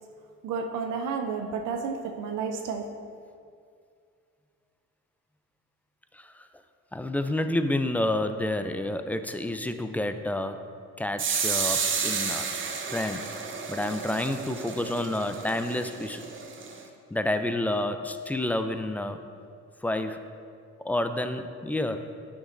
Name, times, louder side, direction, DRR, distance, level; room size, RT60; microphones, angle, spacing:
voice 1, 0.4-2.9, right 5 dB, 80° right, 3 dB, 0.6 m, -31 dB
voice 2, 6.1-6.5 6.9-10.6 11.0-12.5 12.9-13.3 13.7-16.2 17.1-19.2 19.8-20.3 20.8-22.1, left 1 dB, 5° left, 8 dB, 0.3 m, -29 dB
sound 1, 11.2-16.8, right 5 dB, 40° right, 0.7 m, -31 dB
9.3 x 6.1 x 2.6 m, 2.2 s
cardioid pair, 90°, 30 cm